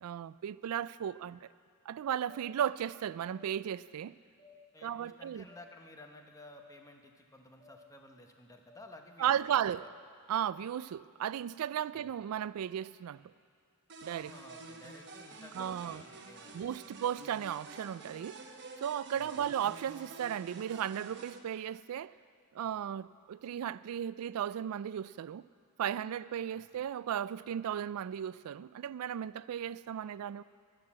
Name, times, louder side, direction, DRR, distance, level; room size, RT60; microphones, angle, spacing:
voice 1, 0.0-1.5 1.9-4.1 4.8-5.4 9.2-9.9 10.3-13.2 14.0-14.3 15.5-16.0 16.5-18.4 18.8-22.1 22.5-25.5 25.8-30.4, right 9 dB, 85° right, 0.3 m, -35 dB
sound 1, 2.2-2.4 3.3-3.5 4.4-4.5 5.5-5.6 6.5-6.7 7.6-7.8 8.7-8.8 9.7-9.9, left 5 dB, 35° left, 2.7 m, -57 dB
voice 2, 4.7-9.3 9.6-9.7 11.9-12.1 14.1-16.7 19.2-19.5 26.5-26.8, left 1 dB, 15° left, 0.9 m, -54 dB
sound 2, 13.9-21.4, right 3 dB, 50° right, 1.0 m, -49 dB
11.5 x 11.5 x 7.4 m
head